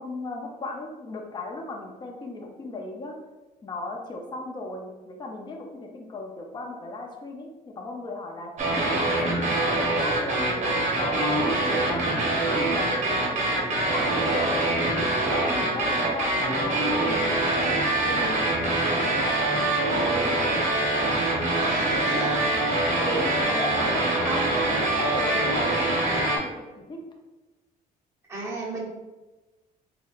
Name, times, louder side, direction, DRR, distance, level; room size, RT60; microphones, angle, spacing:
voice 1, 0.0-3.1 3.6-12.0 12.6-14.0 14.3-14.6 15.2-20.4 21.5-21.8 22.1-22.4 22.9-24.0 24.3-24.4 24.7-27.0, left 2 dB, 25° left, 1 dB, 0.5 m, -36 dB
sound 1, 8.6-26.4, right 2 dB, 45° right, 0.9 m, -24 dB
voice 2, 21.6-22.4 23.8-24.5 28.3-28.9, right 2 dB, 15° right, -5 dB, 1.0 m, -34 dB
4.1 x 2.7 x 2.4 m, 1.1 s
cardioid pair, 110°, 17 cm